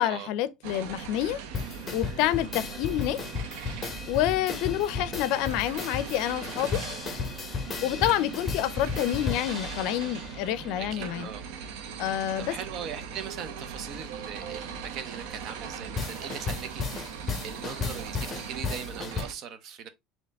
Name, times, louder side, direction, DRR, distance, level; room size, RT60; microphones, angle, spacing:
voice 1, 0.0-1.4 1.9-3.2 4.1-6.8 7.8-11.3 12.0-12.6, left 12 dB, 70° left, 0.5 m, -28 dB
sound 1, 0.6-19.3, right 6 dB, 90° right, 0.8 m, -40 dB
sound 2, 1.5-10.7 16.0-19.2, left 5 dB, 20° left, 1.1 m, -34 dB
voice 2, 10.8-11.4 12.4-17.0 17.4-19.9, right 8 dB, 50° right, 0.8 m, -40 dB
4.4 x 2.9 x 3.5 m
cardioid pair, 140°, 0 cm